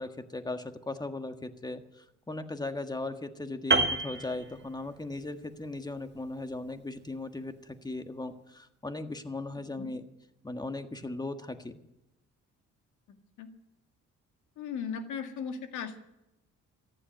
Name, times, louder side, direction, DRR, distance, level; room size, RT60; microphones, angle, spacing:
voice 1, 0.0-10.0 10.4-11.8, left 2 dB, 15° left, 8 dB, 1.6 m, -38 dB
Piano, 3.7-5.1 5.4-5.7, right 3 dB, 35° right, 1.7 m, -28 dB
voice 2, 14.6-16.0, left 6 dB, 80° left, 7 dB, 2.0 m, -37 dB
14.5 x 11.0 x 9.2 m, 0.89 s
cardioid pair, 90°, 30 cm